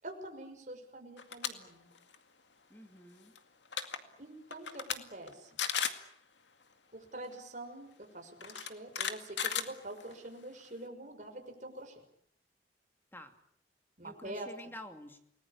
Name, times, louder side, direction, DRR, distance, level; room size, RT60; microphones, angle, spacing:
voice 1, 0.0-1.9 4.2-5.5 6.9-12.0 14.0-14.5, right 1 dB, 45° right, 3 dB, 6.0 m, -46 dB
sound 1, 1.2-1.5 1.9-2.2 3.4-3.5 3.7-4.0 4.5-5.0 5.3-5.4 5.6-6.0 7.2-7.3 8.4-10.3, left 8 dB, 85° left, 2.2 m, -35 dB
voice 2, 2.7-3.4 13.1-13.3 14.0-15.2, left 1 dB, 10° left, 6 dB, 2.6 m, -49 dB
29.5 x 20.0 x 8.6 m, 0.67 s
head